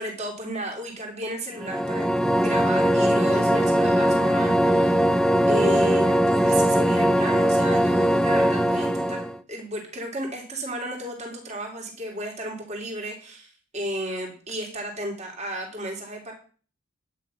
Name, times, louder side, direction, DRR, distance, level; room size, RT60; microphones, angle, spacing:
voice 1, 0.0-5.0 5.4-16.3, right 1 dB, 35° right, 0 dB, 3.4 m, -33 dB
sound 1, 1.6-9.4, equal, 5° left, 0.6 m, -21 dB
11.0 x 9.2 x 5.8 m, 0.41 s
head